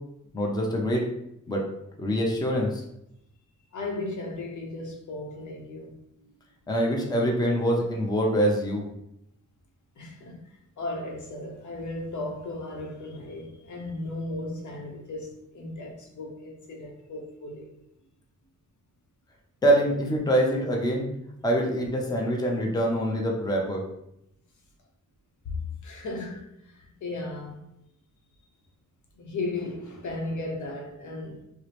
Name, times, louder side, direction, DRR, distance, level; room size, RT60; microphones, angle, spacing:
voice 1, 0.3-1.1 1.5-1.6 2.0-2.8 6.7-8.8 19.6-21.1 21.4-23.8, equal, 15° left, 0.6 m, -24 dB
voice 2, 3.7-6.3 10.0-17.7 25.4-27.6 29.2-31.4, left 2 dB, 70° left, 0.8 m, -36 dB
4.7 x 2.0 x 3.0 m
wide cardioid pair, 120°, 31 cm